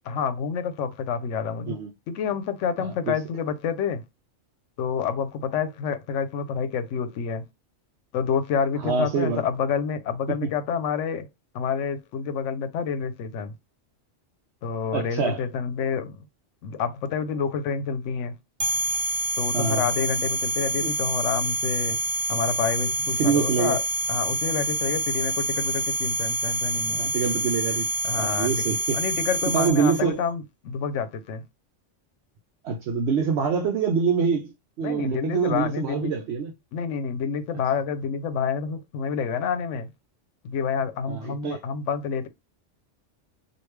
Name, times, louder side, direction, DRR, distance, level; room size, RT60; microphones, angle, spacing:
voice 1, 0.1-1.8 2.1-4.0 4.8-7.4 8.1-11.3 11.5-13.5 14.6-16.2 16.6-18.3 19.4-22.0 22.3-23.8 24.1-27.0 28.0-28.5 28.9-31.4 34.8-36.1 36.7-39.9 40.4-42.3, left 6 dB, 80° left, 0.9 m, -28 dB
voice 2, 2.8-3.2 8.8-9.4 14.9-15.4 19.5-19.8 20.8-20.9 23.2-23.8 26.9-27.9 28.2-29.0 29.5-30.2 32.6-36.5 41.1-41.6, right 6 dB, 70° right, 0.8 m, -25 dB
sound 1, 18.6-30.0, right 1 dB, 50° right, 0.4 m, -27 dB
3.1 x 2.5 x 3.2 m
omnidirectional pair, 1.2 m